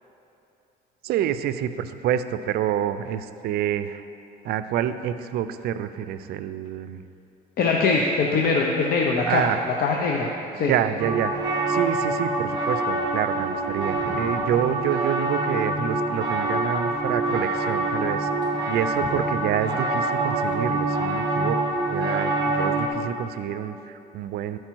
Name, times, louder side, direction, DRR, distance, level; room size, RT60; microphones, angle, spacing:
voice 1, 1.0-4.1 4.4-7.0 9.2-9.6 10.7-18.3 18.7-21.6 21.9-24.6, right 10 dB, 70° right, 12 dB, 0.4 m, -27 dB
voice 2, 7.6-9.5 9.8-10.3 10.6-10.7, left 4 dB, 60° left, 0 dB, 0.7 m, -22 dB
sound 1, 11.0-22.9, right 2 dB, 25° right, 1.3 m, -25 dB
11.5 x 4.6 x 4.5 m, 2.8 s
cardioid pair, 110°, 17 cm